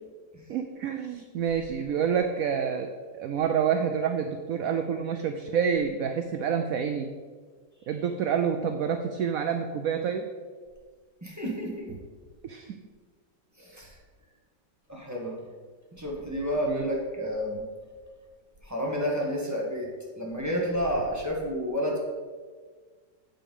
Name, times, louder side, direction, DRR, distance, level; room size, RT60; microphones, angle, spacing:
voice 1, 0.5-7.1 7.9-10.3 12.4-12.7 16.6-16.9, right 7 dB, 75° right, 6 dB, 0.8 m, -28 dB
voice 2, 11.2-12.0 13.6-14.0 14.9-15.4 16.0-17.6 18.6-19.9 20.2-22.0, equal, 10° right, -3 dB, 1.4 m, -30 dB
8.3 x 5.5 x 5.4 m, 1.5 s
omnidirectional pair, 2.0 m